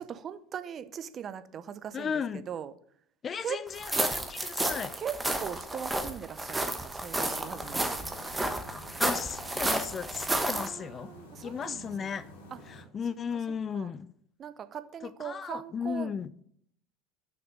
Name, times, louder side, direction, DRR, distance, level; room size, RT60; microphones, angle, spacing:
voice 1, 0.0-2.7 3.4-3.6 5.0-7.9 10.5-12.2 12.5-12.6 13.3-13.4 13.7-13.9 14.4-16.1, right 8 dB, 40° right, 0.7 m, -40 dB
voice 2, 1.9-2.4 3.2-4.9 9.0-11.1 11.4-12.3 12.7-14.1 15.2-16.4, left 6 dB, 35° left, 0.5 m, -35 dB
sound 1, 3.8-10.7, right 2 dB, 10° right, 1.1 m, -31 dB
sound 2, 7.2-12.8, left 1 dB, 75° left, 3.1 m, -50 dB
6.4 x 6.0 x 6.4 m
hypercardioid pair, 75°, 0 cm